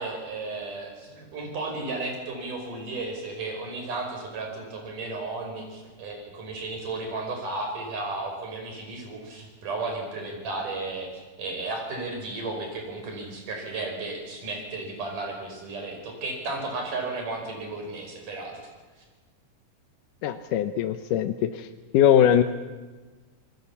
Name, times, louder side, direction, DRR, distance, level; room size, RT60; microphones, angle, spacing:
voice 1, 0.0-11.1 11.4-18.6, right 3 dB, 80° right, 2 dB, 6.7 m, -34 dB
voice 2, 20.2-21.7 21.9-22.4, left 10 dB, 85° left, 8 dB, 2.4 m, -21 dB
28.0 x 20.0 x 7.1 m, 1.3 s
omnidirectional pair, 3.6 m